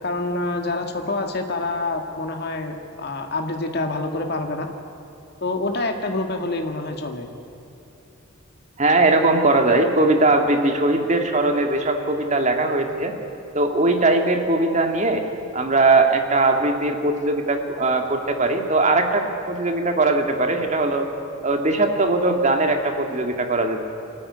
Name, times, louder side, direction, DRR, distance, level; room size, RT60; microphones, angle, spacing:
voice 1, 0.0-4.6 5.4-7.3, left 2 dB, 50° left, 4 dB, 2.0 m, -27 dB
voice 2, 8.8-13.1 13.5-15.2 15.5-21.1 21.4-23.8, right 2 dB, 35° right, 4 dB, 2.0 m, -20 dB
24.5 x 14.0 x 9.8 m, 2.8 s
head